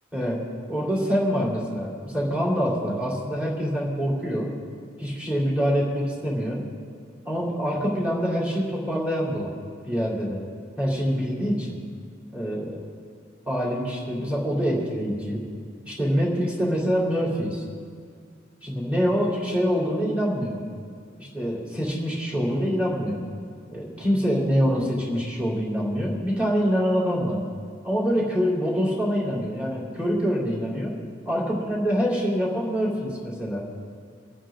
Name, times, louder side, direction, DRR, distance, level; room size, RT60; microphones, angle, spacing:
voice 1, 0.1-4.5 5.0-6.6 7.3-9.5 9.9-10.4 10.8-11.8 12.3-12.8 13.5-15.4 15.8-17.6 18.6-20.6 21.2-23.2 23.7-27.4 27.8-31.0 31.3-33.7, equal, 5° right, -5 dB, 3.4 m, -25 dB
27.0 x 9.0 x 3.8 m, 2.1 s
head